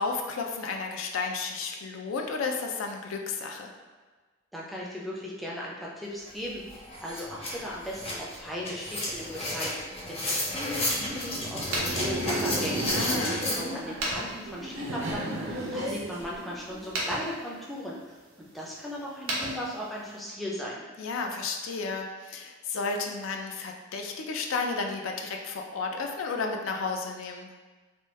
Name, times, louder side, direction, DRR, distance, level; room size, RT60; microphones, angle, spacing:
voice 1, 0.0-3.7 12.9-13.5 21.0-27.5, left 4 dB, 75° left, 2 dB, 0.4 m, -32 dB
voice 2, 4.5-9.7 10.1-12.8 13.5-18.0 18.4-20.8, equal, ahead, -5 dB, 0.4 m, -37 dB
sound 1, 6.3-6.4 6.7-13.6, left 1 dB, 30° left, 0.7 m, -32 dB
Laughter, 10.7-17.0, right 1 dB, 60° right, 0.5 m, -35 dB
sound 2, 11.6-20.3, right 1 dB, 90° right, 0.8 m, -39 dB
2.9 x 2.2 x 3.1 m, 1.3 s
head